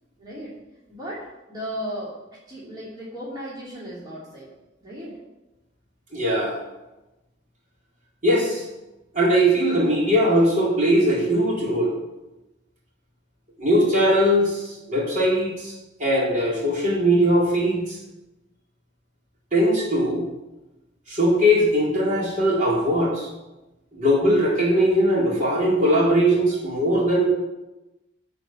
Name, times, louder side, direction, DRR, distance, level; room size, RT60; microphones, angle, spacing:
voice 1, 0.2-0.5 0.9-2.1 2.5-4.5 4.8-5.2, equal, 20° right, -8 dB, 3.1 m, -35 dB
voice 2, 6.1-6.6 8.2-8.7 9.1-11.9 13.6-15.7 16.0-18.0 19.5-20.2 21.1-23.3 23.9-27.2, equal, 45° right, -5 dB, 4.0 m, -20 dB
13.5 x 5.2 x 7.3 m, 1.0 s
head